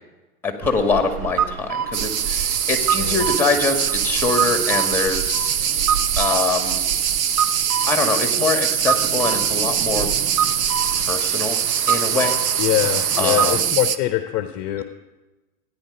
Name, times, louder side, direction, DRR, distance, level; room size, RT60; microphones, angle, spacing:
voice 1, 0.4-5.5 6.2-6.8 7.9-10.1 10.9-11.6 11.9-12.4 13.2-13.7, left 4 dB, 5° left, 5 dB, 2.0 m, -24 dB
sound 1, 0.6-13.6, right 8 dB, 80° right, 0.9 m, -28 dB
sound 2, 1.9-14.0, right 9 dB, 25° right, 0.5 m, -22 dB
voice 2, 3.0-3.3 12.6-14.8, left 14 dB, 35° left, 10 dB, 0.7 m, -23 dB
15.5 x 10.0 x 5.3 m, 1.1 s
hypercardioid pair, 110°, 46 cm